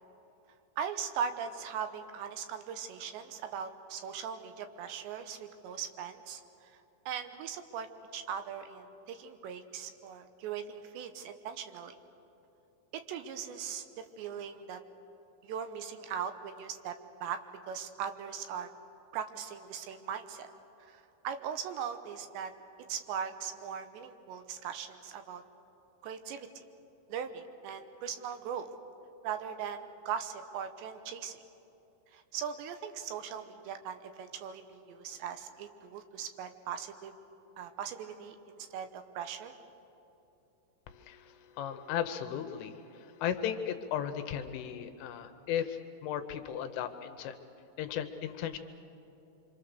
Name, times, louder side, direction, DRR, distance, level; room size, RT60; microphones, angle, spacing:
voice 1, 0.8-6.7 7.1-12.0 12.9-14.8 15.4-17.4 17.7-18.7 19.1-20.5 20.9-22.5 22.9-25.4 26.0-26.6 27.1-28.7 29.2-31.4 32.1-37.1 37.6-39.5, right 7 dB, 75° right, 8 dB, 2.8 m, -39 dB
voice 2, 40.9-47.4 47.8-48.6, left 9 dB, 80° left, 8 dB, 3.2 m, -36 dB
26.0 x 25.5 x 6.7 m, 3.0 s
omnidirectional pair, 5.8 m